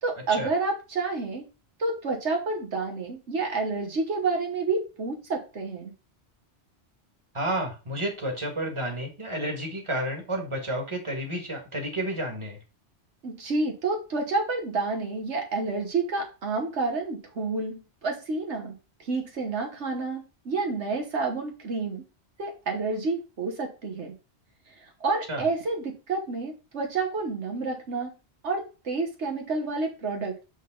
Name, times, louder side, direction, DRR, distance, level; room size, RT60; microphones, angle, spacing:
voice 1, 0.0-1.4 1.8-5.9 13.2-18.7 19.0-22.0 22.4-24.1 24.7-24.8 25.0-28.1 28.4-30.3, right 3 dB, 75° right, 2 dB, 1.5 m, -29 dB
voice 2, 7.3-12.6 25.3-25.4, right 1 dB, 25° right, 1 dB, 1.8 m, -31 dB
8.2 x 3.9 x 3.8 m, 0.31 s
omnidirectional pair, 1.2 m